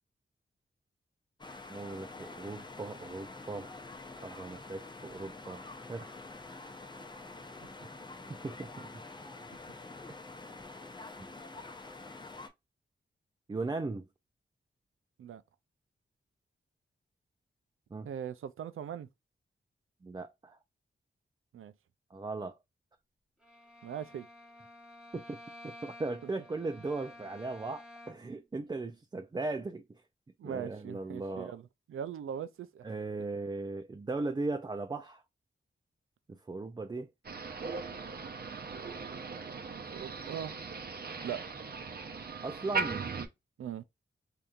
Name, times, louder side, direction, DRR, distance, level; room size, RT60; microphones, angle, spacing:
sound 1, 1.4-12.5, left 3 dB, 20° left, 0.7 m, -47 dB
voice 1, 1.7-3.8 4.2-6.1 8.3-9.0 13.5-14.1 17.9-18.1 20.0-20.6 22.1-22.6 25.1-25.4 25.6-29.8 30.4-31.5 32.8-35.2 36.3-37.1 42.4-43.1, right 3 dB, 20° right, 0.4 m, -38 dB
voice 2, 18.0-19.1 21.5-21.7 23.8-24.3 30.4-32.9 38.2-40.6 41.2-41.4 43.6-43.8, right 9 dB, 85° right, 0.4 m, -41 dB
Bowed string instrument, 23.4-28.4, left 1 dB, 5° right, 1.0 m, -52 dB
Motor vehicle (road), 37.2-43.3, right 4 dB, 50° right, 0.7 m, -39 dB
3.5 x 2.8 x 2.4 m
cardioid pair, 80°, 21 cm